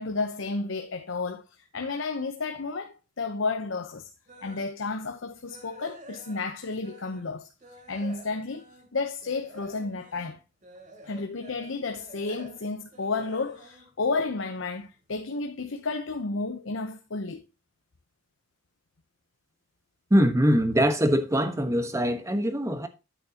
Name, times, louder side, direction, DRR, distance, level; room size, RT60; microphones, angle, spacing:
voice 1, 0.0-1.4 1.7-4.1 4.4-7.5 7.9-8.6 8.9-10.4 11.0-17.4, left 3 dB, 85° left, 0.9 m, -32 dB
sound 1, 4.3-4.7 5.1-7.3 7.6-14.8 15.2-15.4 15.9-16.0 16.4-16.5, right 1 dB, 40° right, 3.0 m, -49 dB
voice 2, 20.1-22.9, equal, 15° right, 1.2 m, -23 dB
9.5 x 9.1 x 2.9 m
head